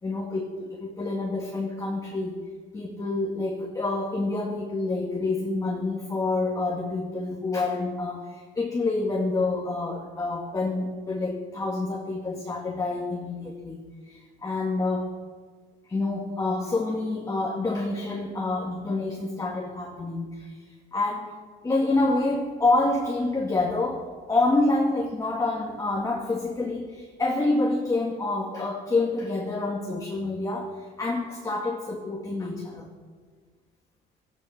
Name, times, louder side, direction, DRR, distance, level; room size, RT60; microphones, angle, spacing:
voice 1, 0.0-2.4 2.7-13.8 14.1-15.1 15.9-21.4 21.6-32.9, left 2 dB, 20° left, 0 dB, 2.1 m, -27 dB
17.0 x 14.0 x 6.0 m, 1.5 s
cardioid pair, 130°, 18 cm